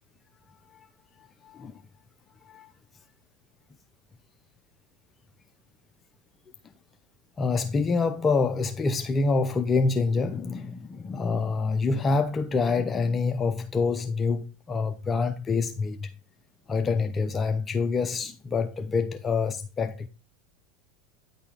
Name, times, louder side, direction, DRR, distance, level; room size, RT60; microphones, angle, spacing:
voice 1, 1.4-1.7 2.4-2.7 7.4-16.1 16.7-20.1, left 4 dB, 25° left, 0.6 m, -26 dB
9.6 x 4.1 x 3.6 m
hypercardioid pair, 95°, 0 cm